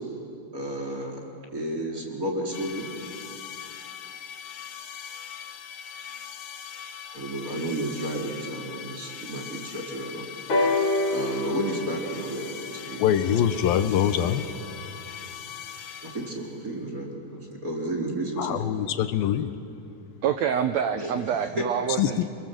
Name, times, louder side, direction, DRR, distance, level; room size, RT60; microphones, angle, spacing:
voice 1, 0.5-1.2 1.5-2.9 7.1-10.2 11.1-13.4 16.0-18.6 21.0-21.1, right 1 dB, 25° right, -1 dB, 3.4 m, -32 dB
sound 1, 2.5-16.6, left 8 dB, 70° left, 2.9 m, -41 dB
sound 2, 10.5-14.3 15.3-15.4, left 2 dB, 40° left, 4.8 m, -28 dB
voice 2, 13.0-14.4 18.4-19.5 22.0-22.2, left 10 dB, 85° left, 10 dB, 2.8 m, -23 dB
voice 3, 20.2-22.2, right 8 dB, 80° right, 8 dB, 1.6 m, -26 dB
27.5 x 23.5 x 7.6 m, 2.6 s
omnidirectional pair, 4.1 m